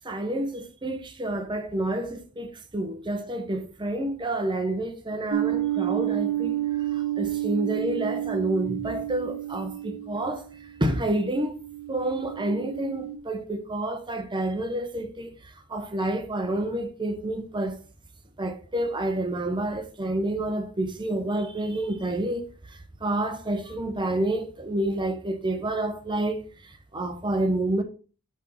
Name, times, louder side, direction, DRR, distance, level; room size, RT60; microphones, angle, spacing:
voice 1, 0.0-6.5 6.9-10.5 10.8-11.6 11.9-15.3 15.7-17.8 18.4-22.5 23.0-26.4 26.9-27.8, right 1 dB, 20° right, 0.9 m, -29 dB
sound 1, 5.3-13.2, right 14 dB, 85° right, 0.6 m, -30 dB
6.1 x 5.4 x 4.2 m
head